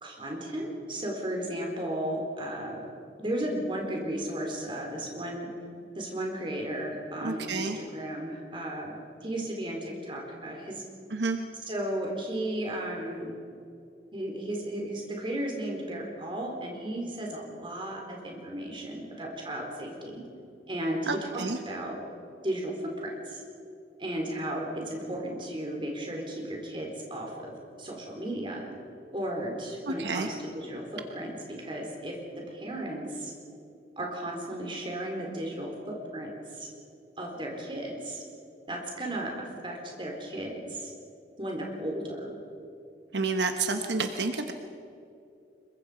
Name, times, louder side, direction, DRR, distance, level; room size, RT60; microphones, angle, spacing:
voice 1, 0.0-2.9 3.2-5.5 5.9-10.8 11.6-13.3 14.1-20.2 20.7-22.0 22.4-23.4 24.0-27.5 27.8-28.6 29.1-33.3 34.0-36.7 37.2-38.2 38.7-40.9 41.4-42.3, right 1 dB, 30° right, 0 dB, 4.0 m, -35 dB
voice 2, 7.2-7.8 11.1-11.4 21.1-21.6 29.9-30.3 43.1-44.5, right 3 dB, 80° right, 6 dB, 1.1 m, -29 dB
26.0 x 22.5 x 5.1 m, 2.6 s
head